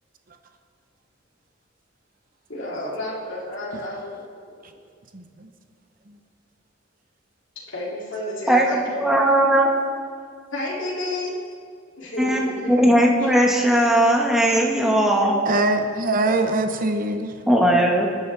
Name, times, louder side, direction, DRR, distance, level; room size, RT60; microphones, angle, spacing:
voice 1, 2.5-4.8 7.7-9.1 10.5-11.4 12.0-12.8 13.2-13.3, left 1 dB, 65° left, -5 dB, 3.0 m, -31 dB
voice 2, 5.1-5.5 15.5-17.3, right 2 dB, 45° right, 6 dB, 0.9 m, -23 dB
voice 3, 9.0-9.7 12.2-12.4 12.7-15.5 17.5-18.1, right 1 dB, 5° right, -1 dB, 1.5 m, -18 dB
20.5 x 11.0 x 3.5 m, 2.1 s
head